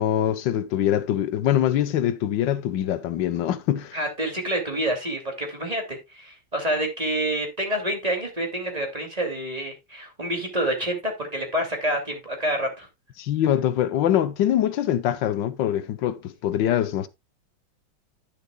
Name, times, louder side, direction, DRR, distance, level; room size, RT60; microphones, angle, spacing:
voice 1, 0.0-4.0 13.2-17.1, left 11 dB, 85° left, 1.5 m, -23 dB
voice 2, 3.9-12.9, right 1 dB, 20° right, 2.7 m, -28 dB
10.5 x 10.0 x 2.3 m
omnidirectional pair, 1.9 m